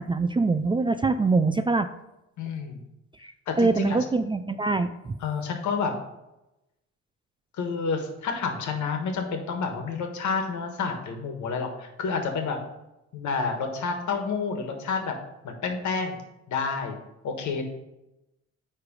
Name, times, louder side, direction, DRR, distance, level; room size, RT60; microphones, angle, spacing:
voice 1, 0.0-1.9 3.2-3.3 3.6-5.2, right 3 dB, 15° right, 9 dB, 0.3 m, -24 dB
voice 2, 2.4-2.8 3.5-4.0 5.2-5.9 7.6-12.6 13.1-15.1 15.4-16.2 16.5-16.9 17.2-17.6, left 5 dB, 70° left, 5 dB, 1.4 m, -29 dB
9.6 x 3.3 x 5.2 m, 0.94 s
cardioid pair, 90°, 30 cm